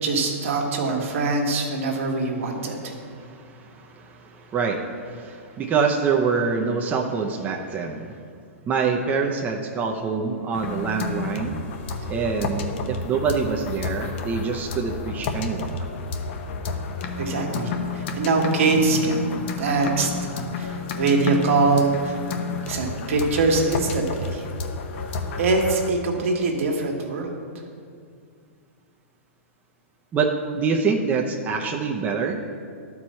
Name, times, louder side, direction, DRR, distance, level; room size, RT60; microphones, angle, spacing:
voice 1, 0.0-2.9 17.2-20.3 20.6-22.2 22.7-24.4 25.4-27.3, right 3 dB, 70° right, 1 dB, 1.5 m, -23 dB
voice 2, 2.9-8.2 8.7-11.6 12.1-15.8 30.1-32.4, right 5 dB, 20° right, 0 dB, 0.6 m, -25 dB
sound 1, 10.5-25.9, left 4 dB, 55° left, 0.9 m, -31 dB
12.0 x 4.7 x 4.3 m, 2.2 s
hypercardioid pair, 130°, 8 cm